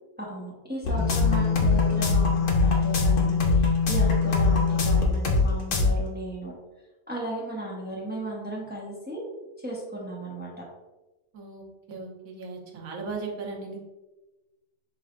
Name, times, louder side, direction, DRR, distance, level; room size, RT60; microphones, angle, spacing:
voice 1, 0.2-3.5 3.9-6.5 7.1-9.2 9.6-10.5, right 1 dB, 10° right, -4 dB, 0.7 m, -35 dB
sound 1, 0.8-5.4 5.7-5.9, left 4 dB, 55° left, 0.6 m, -22 dB
voice 2, 11.3-13.8, right 4 dB, 70° right, 0 dB, 1.3 m, -37 dB
5.3 x 3.5 x 2.4 m, 1.1 s
omnidirectional pair, 1.6 m